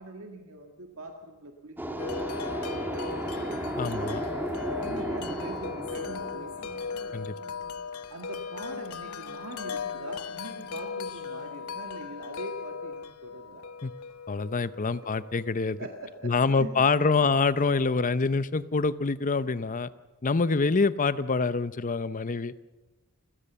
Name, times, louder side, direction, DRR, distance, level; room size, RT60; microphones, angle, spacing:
voice 1, 0.0-3.7 4.8-6.8 8.1-13.7 15.8-17.3, right 2 dB, 70° right, 3 dB, 1.9 m, -43 dB
sound 1, 1.8-7.4, right 1 dB, 10° right, 1.6 m, -34 dB
Wind chime, 2.0-15.9, left 5 dB, 80° left, 1.0 m, -38 dB
sound 2, 2.8-7.9 8.4-12.1, left 1 dB, 65° left, 5.8 m, -53 dB
voice 2, 3.8-4.2 7.1-7.3 13.8-13.9 14.3-15.8 16.2-19.9 20.2-22.6, left 4 dB, 35° left, 15 dB, 0.7 m, -26 dB
29.0 x 15.5 x 7.0 m, 1.1 s
head